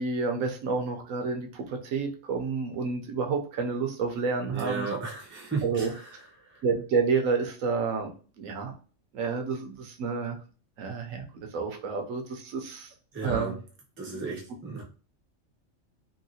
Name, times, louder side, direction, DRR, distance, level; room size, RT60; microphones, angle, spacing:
voice 1, 0.0-5.0 5.6-5.9 6.6-8.7 9.1-10.4 10.8-12.9 13.2-13.6 14.1-14.2, right 4 dB, 80° right, 4 dB, 1.0 m, -30 dB
voice 2, 4.5-6.1 6.4-6.6 13.1-13.5 14.0-14.8, right 4 dB, 15° right, -2 dB, 0.4 m, -34 dB
2.8 x 2.8 x 2.7 m, 0.38 s
omnidirectional pair, 1.4 m